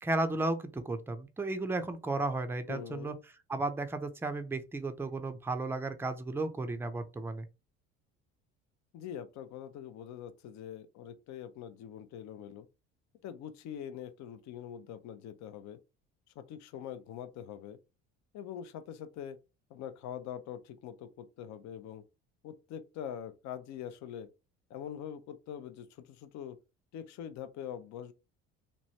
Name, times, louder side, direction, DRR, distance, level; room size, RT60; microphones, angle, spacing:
voice 1, 0.0-3.1 3.5-7.5, right 2 dB, 5° right, 0.4 m, -34 dB
voice 2, 2.7-3.2 8.9-12.7 13.2-15.8 16.4-17.8 18.3-19.4 19.7-22.0 22.4-24.3 24.7-26.6 26.9-28.1, left 9 dB, 55° left, 0.5 m, -43 dB
3.1 x 2.1 x 2.8 m
supercardioid pair, 70°, 33 cm